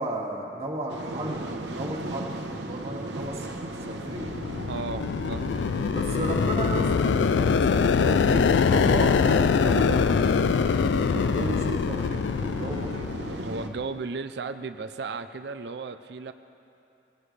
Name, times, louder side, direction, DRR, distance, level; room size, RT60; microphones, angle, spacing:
voice 1, 0.0-4.3 5.9-13.1, right 1 dB, 35° right, -2 dB, 2.0 m, -34 dB
sound 1, 0.9-13.7, right 2 dB, 80° right, 1.0 m, -37 dB
sound 2, 4.0-13.8, left 5 dB, 80° left, 0.4 m, -24 dB
voice 2, 4.7-5.6 13.4-16.3, right 4 dB, 65° right, 10 dB, 0.5 m, -35 dB
21.0 x 16.5 x 3.3 m, 2.8 s
head